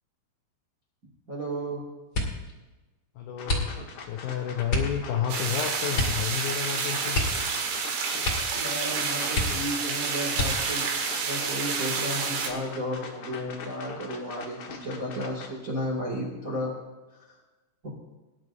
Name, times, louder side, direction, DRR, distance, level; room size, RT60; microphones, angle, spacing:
voice 1, 1.3-1.8 8.5-10.9 11.2-16.7 17.3-17.4 17.8-17.9, equal, 50° right, -4 dB, 1.0 m, -33 dB
sound 1, 2.1-2.5 3.4-4.1 4.7-5.0 5.9-6.3 6.5-6.6 7.1-7.8 8.2-8.6 8.9-9.0 9.3-9.8 10.3-10.9 11.6-12.2 12.6-13.0, left 2 dB, 30° left, 2.0 m, -29 dB
voice 2, 3.2-3.7 4.0-7.2, left 9 dB, 85° left, 3 dB, 2.1 m, -31 dB
sound 2, 3.4-15.5, left 5 dB, 65° left, 1.8 m, -43 dB
sound 3, 5.3-12.5, right 5 dB, 85° right, 3.9 m, -29 dB
22.5 x 11.0 x 2.6 m, 1.2 s
omnidirectional pair, 5.1 m